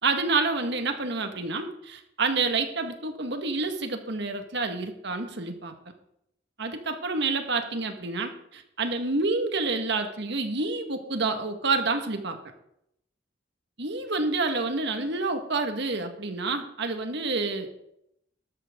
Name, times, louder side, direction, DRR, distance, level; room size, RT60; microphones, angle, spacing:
voice 1, 0.0-5.7 6.6-12.4 13.8-17.8, right 3 dB, 65° right, 6 dB, 1.8 m, -28 dB
13.5 x 12.5 x 3.8 m, 0.77 s
head